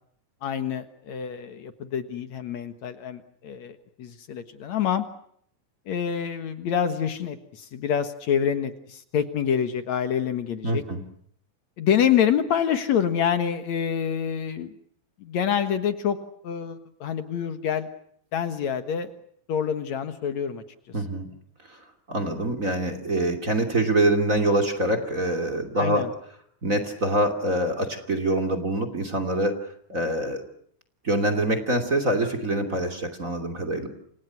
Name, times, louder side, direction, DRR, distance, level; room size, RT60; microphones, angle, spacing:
voice 1, 0.4-5.0 5.9-10.8 11.8-14.7 15.2-16.2 16.4-17.9 18.3-19.1 19.5-20.6 25.8-26.1, left 8 dB, 65° left, 9 dB, 2.6 m, -26 dB
voice 2, 10.6-11.0 20.9-21.3 21.7-21.8 22.1-26.1 26.6-29.6 29.9-30.4 31.0-33.9, right 1 dB, 25° right, 9 dB, 2.9 m, -25 dB
30.0 x 26.0 x 6.0 m, 0.66 s
omnidirectional pair, 3.7 m